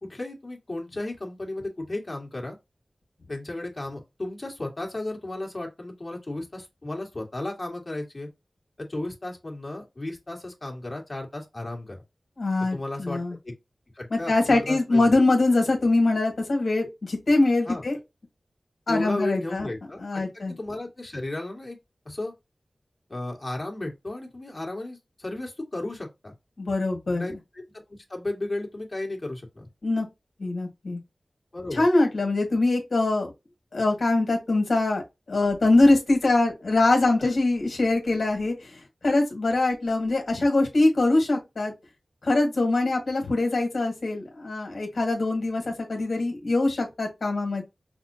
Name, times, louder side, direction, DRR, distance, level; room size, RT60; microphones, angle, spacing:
voice 1, 0.0-2.5 3.3-8.3 8.8-12.0 12.7-13.5 13.9-15.2 17.7-17.8 18.9-21.8 22.0-22.3 23.1-26.3 27.1-29.7 31.5-31.9 37.2-37.3, left 2 dB, 40° left, 1.6 m, -34 dB
voice 2, 12.4-13.3 14.1-18.0 18.9-19.7 20.0-20.5 26.6-27.3 29.8-30.1 30.4-31.0 31.7-33.3 33.7-35.0 35.3-41.7 42.2-47.6, left 2 dB, 75° left, 1.5 m, -23 dB
5.7 x 2.2 x 2.7 m
wide cardioid pair, 65°, 0 cm